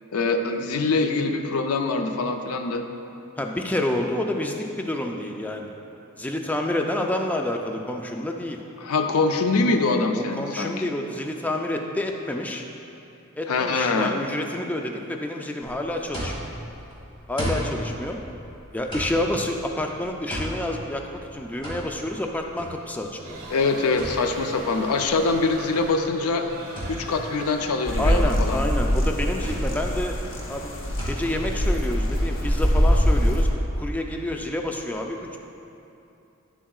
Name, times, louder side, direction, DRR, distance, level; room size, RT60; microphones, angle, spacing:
voice 1, 0.1-2.8 8.8-10.7 13.5-14.1 23.5-26.5 26.9-28.6, left 3 dB, 90° left, 6 dB, 0.5 m, -24 dB
voice 2, 3.4-5.7 6.2-8.6 10.1-12.6 13.3-16.5 17.3-18.2 18.7-23.4 28.0-30.2 30.5-30.7 31.0-33.5 33.8-35.4, left 1 dB, 5° left, 2 dB, 0.3 m, -28 dB
sound 1, 15.6-32.9, equal, 25° left, 1.7 m, -36 dB
sound 2, 23.2-28.5, right 1 dB, 40° right, 1.4 m, -40 dB
sound 3, 27.9-33.5, equal, 60° left, 0.9 m, -23 dB
10.0 x 7.3 x 2.4 m, 2.8 s
head